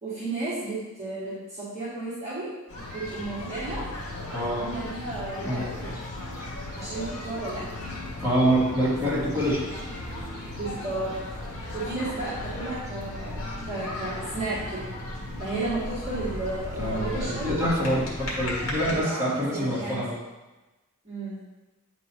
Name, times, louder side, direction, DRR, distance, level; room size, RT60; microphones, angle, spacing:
voice 1, 0.0-2.5 2.9-3.8 4.5-5.8 6.7-7.6 10.6-11.1 11.7-14.9 15.4-17.6 18.8-20.0 21.0-21.4, right 2 dB, 30° right, -10 dB, 1.6 m, -33 dB
sound 1, 2.7-19.0, left 1 dB, 70° left, 1.7 m, -36 dB
voice 2, 4.3-4.7 5.4-5.7 8.2-9.6 16.8-20.1, equal, 15° right, -9 dB, 2.1 m, -26 dB
8.9 x 4.4 x 2.8 m, 1.1 s
head